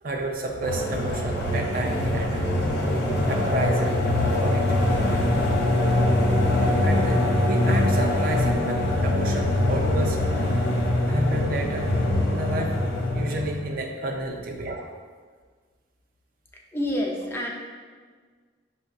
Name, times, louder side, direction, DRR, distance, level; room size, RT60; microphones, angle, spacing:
voice 1, 0.0-2.5 3.3-3.9 4.3-4.8 6.8-10.2 11.0-11.9 12.3-12.8 13.1-14.9, right 1 dB, 55° right, 1 dB, 0.4 m, -31 dB
sound 1, 0.6-13.7, left 1 dB, 65° left, 0.6 m, -23 dB
voice 2, 16.7-17.5, left 1 dB, 15° left, -1 dB, 0.4 m, -27 dB
5.9 x 2.1 x 2.4 m, 1.5 s
head